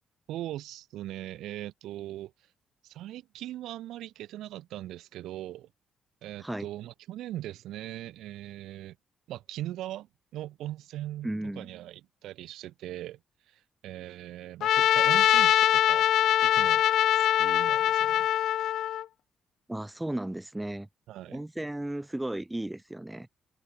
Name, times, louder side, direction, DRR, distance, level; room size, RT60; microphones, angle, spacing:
voice 1, 0.3-2.3 2.8-5.7 6.2-9.0 9.3-13.2 13.5-16.1 16.4-16.8 17.1-18.3 21.1-21.4, right 14 dB, 85° right, 4.2 m, -40 dB
voice 2, 11.2-11.7 19.7-20.9 21.3-23.3, right 1 dB, 10° right, 7.6 m, -34 dB
Trumpet, 14.6-19.0, left 12 dB, 75° left, 0.9 m, -23 dB
cardioid pair, 90°, 0 cm